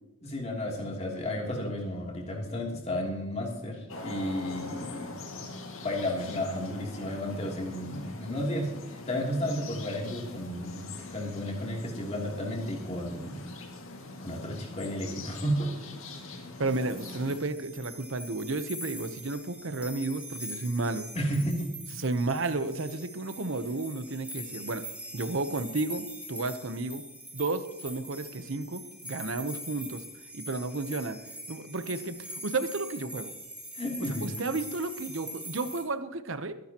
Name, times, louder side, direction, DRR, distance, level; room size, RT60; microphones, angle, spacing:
voice 1, 0.2-5.1 5.4-5.5 5.8-13.4 14.2-15.7 16.2-16.4 21.1-21.7 33.7-34.3, equal, 30° left, 0 dB, 3.0 m, -33 dB
sound 1, 3.9-17.4, left 2 dB, 70° left, 2.1 m, -43 dB
sound 2, 16.6-35.8, equal, 5° right, 2.1 m, -43 dB
voice 2, 16.6-21.1 22.0-24.8 25.1-27.0 27.3-30.0 30.3-31.2 31.5-33.3 34.2-36.5, right 2 dB, 60° right, 11 dB, 0.9 m, -32 dB
24.5 x 10.5 x 3.0 m, 1.0 s
head